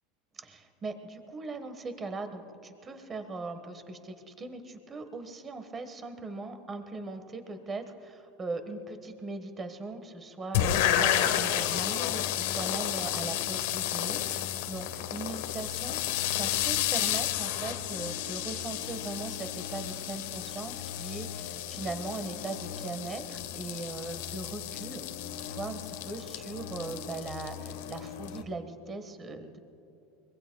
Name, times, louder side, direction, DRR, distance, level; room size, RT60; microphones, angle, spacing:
voice 1, 0.3-25.0 25.5-29.6, right 3 dB, 20° right, 8 dB, 1.3 m, -39 dB
sound 1, 10.5-28.4, left 11 dB, 80° left, 1.2 m, -32 dB
25.0 x 22.5 x 2.3 m, 3.0 s
supercardioid pair, 150°, 0 cm